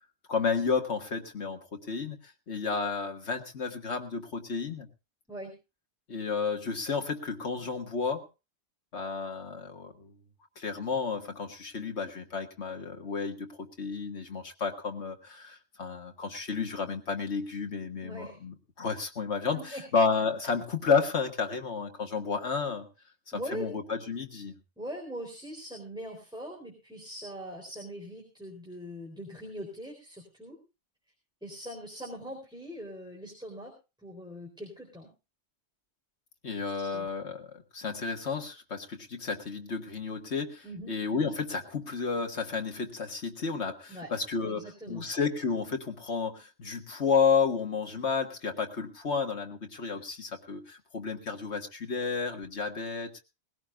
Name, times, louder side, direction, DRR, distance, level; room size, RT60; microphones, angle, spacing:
voice 1, 0.3-2.2 2.5-4.9 6.1-8.2 8.9-10.1 10.6-22.9 23.5-24.5 36.4-53.2, left 5 dB, 80° left, 4 dB, 2.0 m, -31 dB
voice 2, 18.0-18.4 19.5-19.8 23.3-23.7 24.8-30.6 31.4-33.7 34.0-35.1 36.8-37.1 40.6-40.9 43.9-44.1 44.4-45.1, equal, 5° right, -1 dB, 4.0 m, -41 dB
20.0 x 16.5 x 2.4 m, 0.29 s
omnidirectional pair, 1.1 m